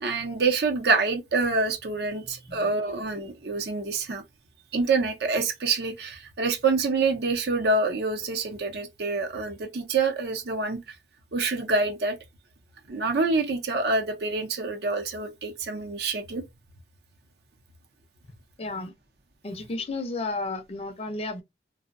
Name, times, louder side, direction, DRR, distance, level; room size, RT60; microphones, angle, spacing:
voice 1, 0.0-4.2 4.7-10.8 11.3-12.2 12.9-16.4, right 3 dB, 65° right, 0.5 m, -26 dB
voice 2, 18.6-18.9 19.4-21.4, left 2 dB, 35° left, 0.4 m, -32 dB
2.6 x 2.0 x 2.4 m
head